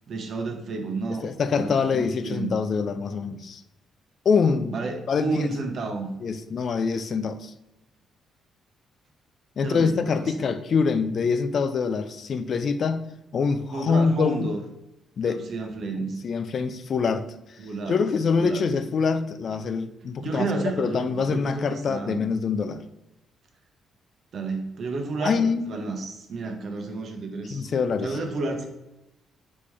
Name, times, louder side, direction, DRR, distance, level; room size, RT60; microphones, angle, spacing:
voice 1, 0.1-1.3 1.5-2.5 4.7-6.1 9.6-10.5 13.7-14.6 15.2-16.2 17.6-18.0 18.4-18.6 20.2-22.2 24.3-27.7 28.0-28.7, right 3 dB, 55° right, 3 dB, 0.9 m, -31 dB
voice 2, 1.1-3.6 4.3-5.5 6.2-7.5 9.6-13.1 13.3-14.5 15.2-15.4 16.0-17.3 17.9-20.5 20.8-22.8 25.2-25.8 27.5-28.2, left 5 dB, 55° left, 10 dB, 0.4 m, -25 dB
4.1 x 3.7 x 3.1 m, 0.92 s
cardioid pair, 90°, 0 cm